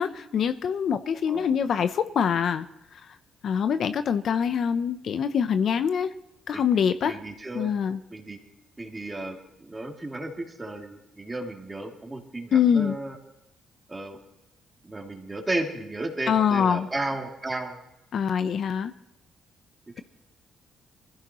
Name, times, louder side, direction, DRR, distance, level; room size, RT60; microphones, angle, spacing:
voice 1, 0.0-2.7 2.9-3.0 3.4-6.1 6.5-7.2 7.5-8.0 12.5-13.0 16.3-16.9 18.1-18.9, left 7 dB, 60° left, 10 dB, 0.7 m, -24 dB
voice 2, 7.0-7.7 8.1-8.4 8.8-13.2 13.9-14.2 14.8-17.8, right 2 dB, 20° right, 1 dB, 2.8 m, -34 dB
23.0 x 15.5 x 3.1 m, 0.90 s
cardioid pair, 90°, 0 cm